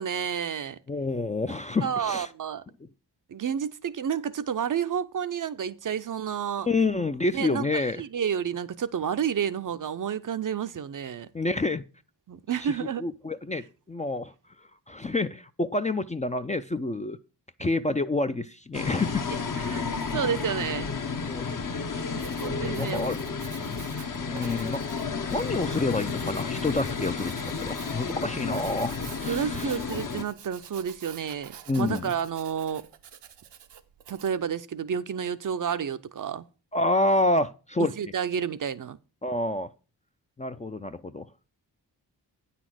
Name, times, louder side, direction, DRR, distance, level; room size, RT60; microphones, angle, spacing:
voice 1, 0.0-0.8 1.8-2.6 3.3-6.7 7.3-11.3 12.3-13.0 19.6-20.9 22.4-23.1 29.3-32.9 34.1-36.5 37.8-39.0, right 8 dB, 50° right, 0.6 m, -30 dB
voice 2, 0.9-2.3 6.7-8.0 11.3-11.8 12.6-12.8 13.0-14.3 14.9-17.2 17.6-19.3 21.2-22.0 22.4-23.2 24.1-29.8 31.7-32.0 36.7-37.9 39.2-39.7 40.4-41.3, left 2 dB, 20° left, 0.4 m, -28 dB
sound 1, 18.7-30.2, left 5 dB, 50° left, 1.0 m, -32 dB
Writing, 22.0-34.4, right 9 dB, 75° right, 0.7 m, -48 dB
8.9 x 4.2 x 6.1 m
cardioid pair, 50°, 43 cm